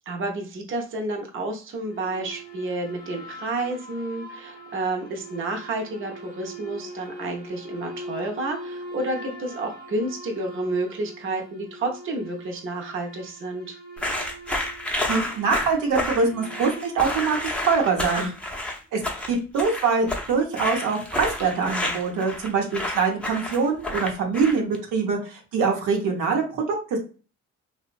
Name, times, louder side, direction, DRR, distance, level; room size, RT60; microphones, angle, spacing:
voice 1, 0.1-13.8 18.1-18.3, right 2 dB, 45° right, 2 dB, 0.7 m, -30 dB
sound 1, 1.7-18.3, right 1 dB, 30° left, 0.8 m, -41 dB
sound 2, 14.0-24.8, left 1 dB, 5° left, 0.6 m, -30 dB
voice 2, 15.1-18.3 18.9-19.0 19.3-27.0, right 5 dB, 85° right, 1 dB, 0.8 m, -24 dB
2.8 x 2.1 x 2.4 m, 0.35 s
cardioid pair, 90°, 30 cm